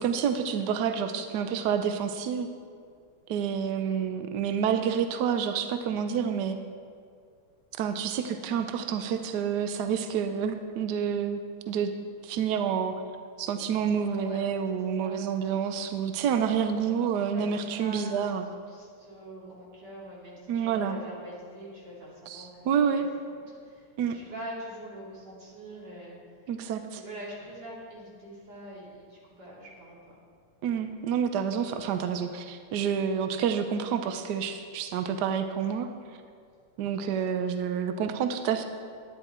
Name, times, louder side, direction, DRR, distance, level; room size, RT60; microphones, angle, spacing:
voice 1, 0.0-2.5 3.3-6.6 7.8-11.4 11.7-11.9 12.2-12.9 13.4-18.5 20.5-21.0 22.3-23.1 24.0-24.2 26.5-27.0 30.6-35.9 36.8-38.6, right 7 dB, 75° right, 8 dB, 0.9 m, -28 dB
voice 2, 14.0-14.4 14.7-15.3 16.8-16.9 17.2-22.5 22.9-23.0 23.5-26.2 27.0-30.1 36.8-37.1, equal, 50° right, -6 dB, 3.3 m, -44 dB
11.0 x 10.0 x 4.3 m, 2.2 s
omnidirectional pair, 2.4 m